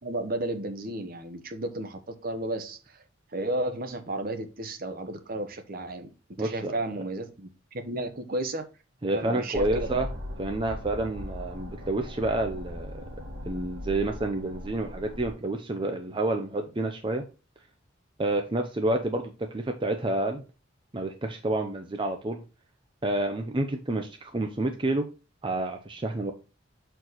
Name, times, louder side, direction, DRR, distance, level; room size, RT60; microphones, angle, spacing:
voice 1, 0.0-3.0 3.3-6.1 6.4-8.7 9.1-9.9, right 1 dB, 45° right, 8 dB, 0.9 m, -33 dB
voice 2, 6.4-6.7 9.0-10.1 10.4-13.0 13.5-17.2 18.2-20.4 20.9-22.4 23.0-25.1 25.4-26.3, right 2 dB, 25° right, 5 dB, 0.6 m, -29 dB
sound 1, 9.5-15.3, left 1 dB, 65° right, 2.3 m, -38 dB
6.4 x 4.5 x 4.0 m, 0.31 s
head